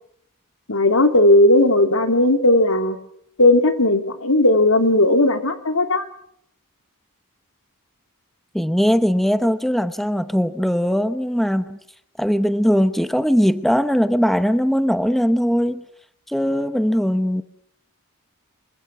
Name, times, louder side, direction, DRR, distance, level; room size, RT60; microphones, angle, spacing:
voice 1, 0.7-3.0 3.4-6.0, left 1 dB, 70° left, 7 dB, 2.9 m, -16 dB
voice 2, 8.5-11.8 12.2-15.8 16.3-17.4, equal, ahead, 11 dB, 0.9 m, -20 dB
26.5 x 24.5 x 6.1 m, 0.71 s
head